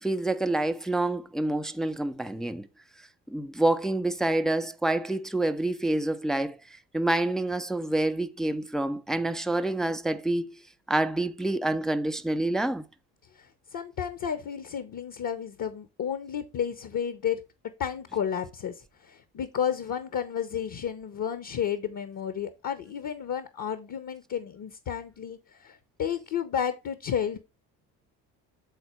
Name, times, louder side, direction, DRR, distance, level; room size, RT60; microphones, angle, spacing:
voice 1, 0.0-2.7 3.3-6.6 6.9-10.5 10.9-12.8, right 2 dB, ahead, 0.5 m, -27 dB
voice 2, 13.3-17.4 17.8-27.4, left 8 dB, 40° left, 1.0 m, -32 dB
8.2 x 4.2 x 4.5 m
figure-of-eight pair, 55°, 50 cm